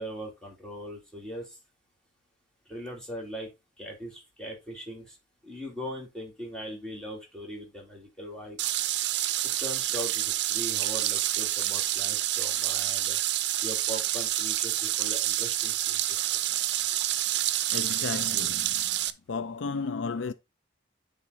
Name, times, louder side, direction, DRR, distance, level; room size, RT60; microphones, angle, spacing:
voice 1, 0.0-1.5 2.7-3.5 3.8-5.2 5.4-8.6 9.6-13.2 13.6-16.0, equal, 5° left, 2.7 m, -40 dB
sound 1, 8.6-19.1, right 13 dB, 60° right, 0.5 m, -28 dB
voice 2, 17.7-19.0 19.3-20.3, left 4 dB, 80° left, 0.5 m, -33 dB
9.4 x 3.9 x 4.0 m
head